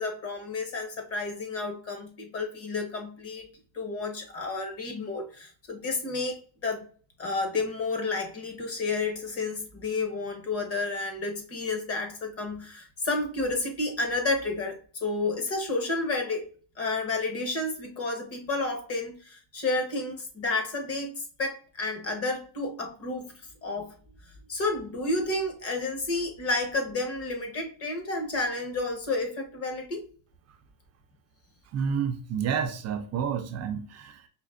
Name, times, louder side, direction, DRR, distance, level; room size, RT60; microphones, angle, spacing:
voice 1, 0.0-3.5 3.7-6.9 7.2-16.5 16.8-23.3 23.6-23.9 24.5-30.1, left 3 dB, 30° left, 1.1 m, -31 dB
voice 2, 31.7-34.3, right 7 dB, 35° right, 0.4 m, -30 dB
5.1 x 2.7 x 2.5 m
cardioid pair, 145°, 48 cm